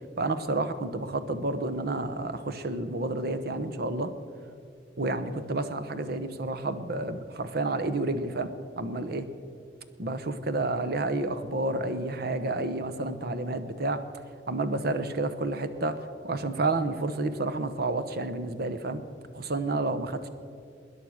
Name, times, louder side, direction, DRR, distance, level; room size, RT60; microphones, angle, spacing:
voice 1, 0.2-4.1 5.0-8.5 8.8-9.3 10.0-14.0 14.5-16.0 16.2-19.0 19.3-20.3, right 2 dB, 60° right, 10 dB, 1.0 m, -30 dB
20.5 x 10.0 x 6.4 m, 2.4 s
head